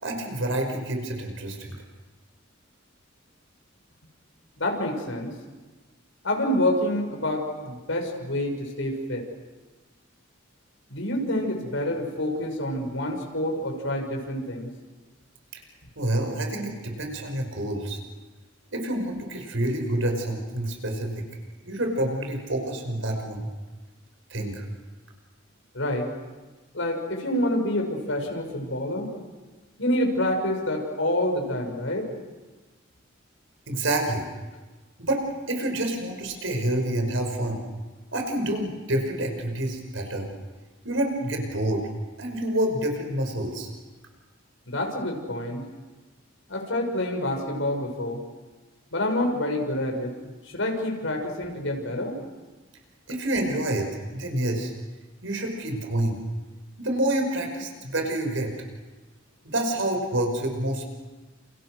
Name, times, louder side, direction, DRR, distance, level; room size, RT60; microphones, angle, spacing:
voice 1, 0.0-1.8 16.0-18.0 18.7-21.2 21.6-23.5 24.3-24.6 33.7-34.3 35.0-35.2 35.5-37.6 38.1-40.3 40.8-41.9 42.2-43.7 53.1-54.7 55.2-56.2 56.8-58.5 59.5-60.9, right 1 dB, 80° right, 3 dB, 5.8 m, -28 dB
voice 2, 4.6-5.4 6.2-9.2 10.9-14.7 25.7-26.1 26.7-29.1 29.8-32.1 44.7-45.7 46.5-48.2 48.9-50.1 50.5-52.2, left 1 dB, 75° left, 3 dB, 6.2 m, -27 dB
30.0 x 29.5 x 6.5 m, 1.2 s
head